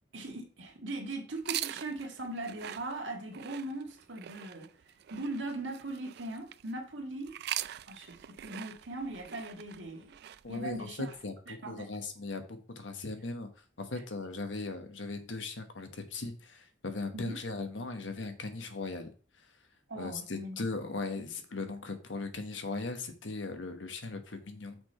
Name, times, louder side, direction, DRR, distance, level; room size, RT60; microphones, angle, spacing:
voice 1, 0.1-4.7 5.1-7.3 7.9-10.2 10.5-11.1 11.5-11.9 17.1-17.4 19.9-20.6, right 2 dB, 80° right, 1.6 m, -39 dB
sound 1, 1.3-6.7 7.2-11.2, right 13 dB, 60° right, 0.3 m, -43 dB
voice 2, 10.4-13.5 13.8-19.1 19.9-24.8, left 3 dB, 90° left, 1.2 m, -38 dB
6.1 x 5.7 x 4.3 m
head